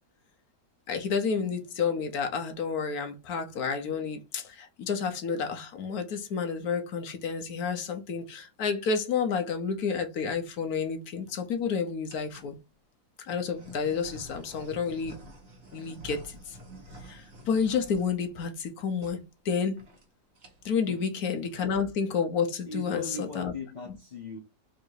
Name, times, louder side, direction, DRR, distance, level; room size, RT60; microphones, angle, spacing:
voice 1, 0.9-12.6 13.3-15.2 15.7-16.6 17.0-19.9 20.6-23.5, left 6 dB, 70° left, 1.3 m, -30 dB
sound 1, 10.0-10.4 11.1-11.6 12.1-12.6 13.3-18.7 19.0-19.2 19.5-19.6 19.8-20.1 20.3-20.8, right 1 dB, 40° right, 1.3 m, -49 dB
voice 2, 22.6-24.4, left 3 dB, 45° left, 0.6 m, -38 dB
3.8 x 2.6 x 4.6 m
omnidirectional pair, 1.7 m